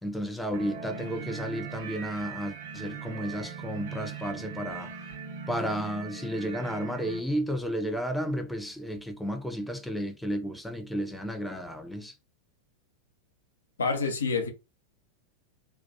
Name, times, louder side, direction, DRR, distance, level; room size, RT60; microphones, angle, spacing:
voice 1, 0.0-4.9 5.5-12.1, equal, 5° left, 0.4 m, -32 dB
sound 1, 0.5-7.2, right 6 dB, 50° right, 0.5 m, -40 dB
voice 2, 13.8-14.5, left 4 dB, 70° left, 0.6 m, -27 dB
2.2 x 2.1 x 2.7 m
figure-of-eight pair, 90°, 0 cm